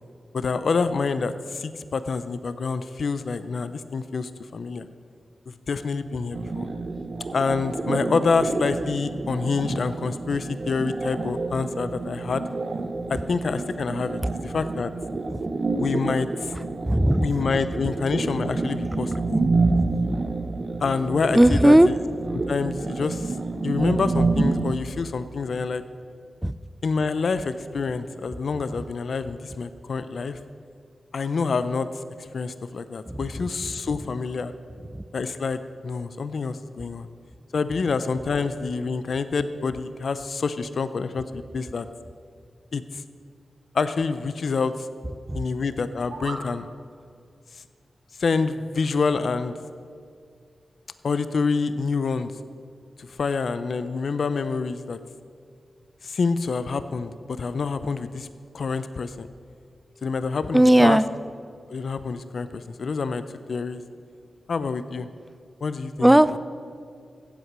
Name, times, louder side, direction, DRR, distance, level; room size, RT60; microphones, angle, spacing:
voice 1, 0.3-4.9 5.7-6.7 7.3-12.4 13.1-14.9 15.8-16.5 17.2-19.4 20.8-22.0 22.3-23.4 23.6-25.8 26.8-30.4 31.1-32.0 32.3-34.5 35.1-37.1 37.5-41.9 42.7-43.0 43.7-44.7 45.3-46.7 48.2-49.5 51.0-52.3 53.0-55.0 56.0-58.3 58.5-59.3 60.0-61.0 61.7-63.2 63.5-63.8 64.5-65.1 65.6-66.4, left 4 dB, 70° left, 12 dB, 0.5 m, -27 dB
sound 1, 6.3-24.7, right 3 dB, 50° right, 1.0 m, -28 dB
voice 2, 16.5-17.3 19.7-20.0 21.3-21.9 26.4-26.5 33.1-33.5 34.9-35.0 45.3-45.4 60.5-61.1 66.0-66.4, right 1 dB, 10° right, 15 dB, 0.5 m, -18 dB
sound 2, 45.8-46.5, right 3 dB, 80° right, 1.4 m, -37 dB
15.5 x 8.3 x 6.0 m, 2.3 s
cardioid pair, 75°, 0 cm